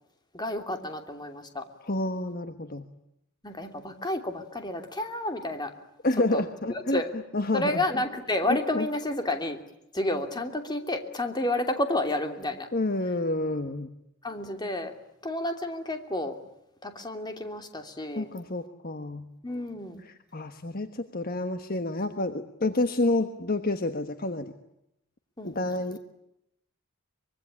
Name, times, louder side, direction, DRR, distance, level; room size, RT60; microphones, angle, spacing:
voice 1, 0.3-1.6 3.4-5.7 6.3-6.4 6.7-7.1 7.5-9.6 9.9-12.7 14.2-14.9 15.2-16.4 16.8-18.3 19.4-20.0 25.4-25.8, left 1 dB, 20° left, 5 dB, 2.9 m, -30 dB
voice 2, 1.8-2.9 6.0-7.0 7.3-7.8 8.5-8.9 12.7-13.9 18.1-19.3 20.0-24.5 25.4-26.0, left 2 dB, 40° left, 8 dB, 1.4 m, -29 dB
25.0 x 23.0 x 10.0 m, 0.81 s
head